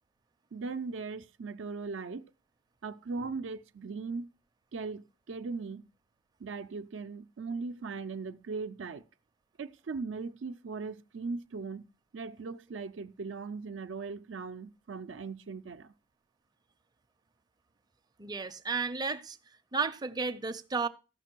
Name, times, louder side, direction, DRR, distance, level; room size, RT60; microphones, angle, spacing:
voice 1, 0.5-2.2 2.8-4.3 4.7-5.8 6.4-9.0 9.6-11.8 12.1-15.9, right 4 dB, 80° right, 0.5 m, -39 dB
voice 2, 18.2-19.4 19.7-20.9, right 4 dB, 20° right, 0.5 m, -33 dB
14.5 x 5.9 x 4.5 m
head